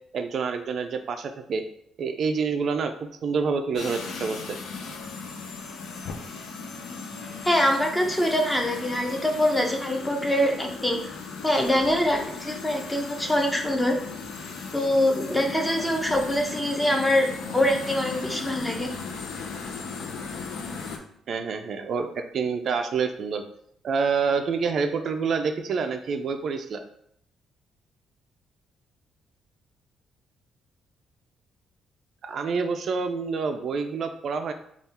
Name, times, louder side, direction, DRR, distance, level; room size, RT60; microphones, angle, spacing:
voice 1, 0.1-1.6 2.0-2.9 3.2-4.6 21.3-23.4 23.8-26.8 32.2-34.5, right 5 dB, 60° right, 7 dB, 0.3 m, -27 dB
sound 1, 3.8-21.0, left 4 dB, 85° left, 0.5 m, -37 dB
voice 2, 7.4-11.1 11.4-14.0 14.7-17.3 17.5-18.9, left 1 dB, 10° left, 2 dB, 0.7 m, -24 dB
3.5 x 2.3 x 4.2 m, 0.71 s
cardioid pair, 90°, 0 cm